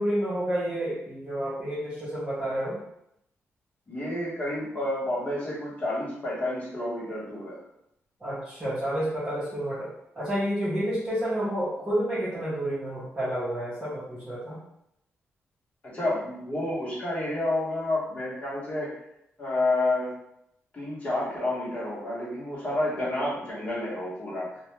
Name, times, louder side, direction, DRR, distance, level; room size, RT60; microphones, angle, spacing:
voice 1, 0.0-2.8 8.2-9.9 10.1-14.6, equal, 20° right, -11 dB, 0.8 m, -29 dB
voice 2, 3.9-7.6 15.8-18.9 19.4-20.1 20.7-24.5, left 1 dB, 30° left, -6 dB, 0.9 m, -29 dB
2.2 x 2.2 x 3.0 m, 0.78 s
wide cardioid pair, 140°, 5 cm